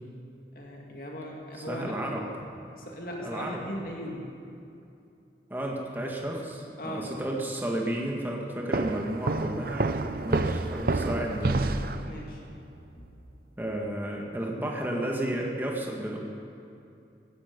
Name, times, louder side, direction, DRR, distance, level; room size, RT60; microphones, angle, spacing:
voice 1, 0.5-2.3 2.7-4.3 6.8-7.1 11.3-11.4 12.0-12.4 13.0-13.1, equal, 55° left, -1 dB, 2.0 m, -38 dB
voice 2, 1.6-2.2 3.2-3.6 5.5-9.9 10.2-11.8 13.6-16.2, right 1 dB, 10° right, -1 dB, 1.8 m, -32 dB
sound 1, 8.7-12.4, right 2 dB, 55° right, 0.7 m, -28 dB
17.5 x 15.0 x 5.4 m, 2.6 s
head